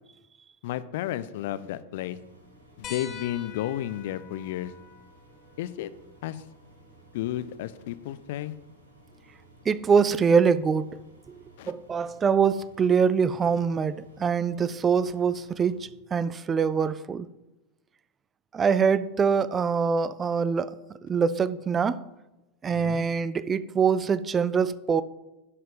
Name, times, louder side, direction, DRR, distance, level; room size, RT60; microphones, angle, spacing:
voice 1, 0.6-2.2 2.8-4.7 5.6-5.9 6.2-6.4 7.1-8.5 11.6-11.7 22.7-23.0, left 13 dB, 50° left, 0.5 m, -32 dB
Engine, 2.0-15.8, right 1 dB, 70° right, 2.9 m, -56 dB
sound 1, 2.8-7.9 9.4-9.5 11.2-11.3, left 7 dB, 35° left, 1.3 m, -47 dB
voice 2, 9.7-10.9 11.3-17.3 18.5-20.8 21.0-22.0 22.6-25.0, right 6 dB, 20° right, 0.4 m, -24 dB
11.0 x 5.6 x 5.3 m
figure-of-eight pair, 90°, 0 cm